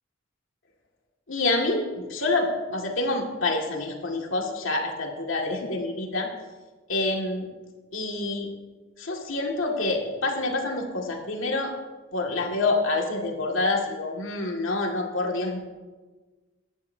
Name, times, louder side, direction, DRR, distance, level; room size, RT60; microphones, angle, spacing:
voice 1, 1.3-6.3 6.9-7.5 7.9-8.5 9.0-11.7 12.1-15.6, left 2 dB, 80° left, 1 dB, 2.1 m, -27 dB
17.5 x 11.5 x 2.8 m, 1.3 s
head